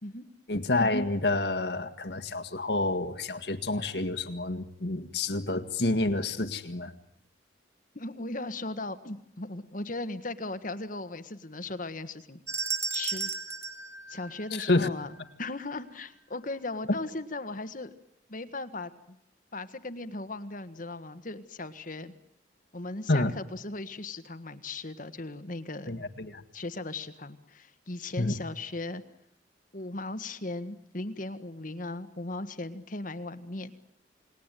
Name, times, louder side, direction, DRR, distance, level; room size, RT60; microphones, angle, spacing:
voice 1, 0.5-6.9 14.5-14.9 23.1-23.3 25.9-26.4 28.2-28.3, left 2 dB, 60° left, 8 dB, 1.9 m, -28 dB
voice 2, 7.9-12.4 12.9-13.3 14.1-15.1 15.4-17.9 18.3-19.2 19.5-22.1 22.7-26.1 26.5-29.0 29.7-33.7, left 2 dB, 45° left, 10 dB, 1.5 m, -37 dB
sound 1, 12.5-14.9, right 5 dB, 15° right, 2.8 m, -34 dB
29.5 x 20.0 x 9.2 m, 0.79 s
head